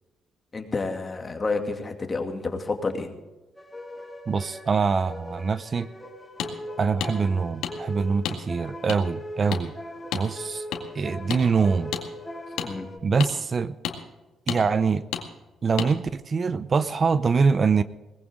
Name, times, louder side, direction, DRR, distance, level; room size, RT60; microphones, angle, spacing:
voice 1, 0.5-3.2 12.6-12.9, left 3 dB, 30° left, 5 dB, 2.4 m, -29 dB
sound 1, 3.6-13.0, left 1 dB, 5° left, 3.9 m, -39 dB
voice 2, 4.3-5.9 6.8-9.7 10.1-10.6 10.9-11.9 13.0-13.7 14.5-15.0 15.6-17.8, right 5 dB, 40° right, 14 dB, 0.6 m, -24 dB
sound 2, 6.4-6.5 7.0-7.1 7.6-7.7 8.2-8.4 8.9-9.0 9.5-9.6 10.1-10.3 10.7-10.8 11.3-11.4 11.9-12.0 12.6-12.7 13.2-13.3 13.8-14.0 14.5-14.6 15.1-15.2 15.8-15.9, left 9 dB, 90° left, 2.0 m, -30 dB
19.5 x 15.5 x 3.7 m, 1.1 s
cardioid pair, 90°, 0 cm